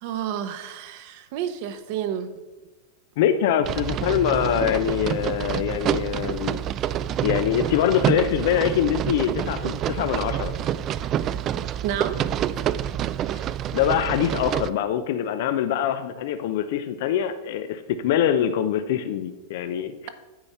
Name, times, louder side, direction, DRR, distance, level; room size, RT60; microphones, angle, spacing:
voice 1, 0.0-2.3 11.8-12.3, right 9 dB, 55° right, 9 dB, 0.9 m, -30 dB
voice 2, 3.2-6.6 7.2-10.5 13.3-13.4 13.7-20.1, left 9 dB, 65° left, 9 dB, 0.5 m, -24 dB
sound 1, 3.6-14.7, right 10 dB, 35° right, 0.3 m, -27 dB
8.7 x 4.2 x 7.1 m, 1.1 s
supercardioid pair, 135°, 0 cm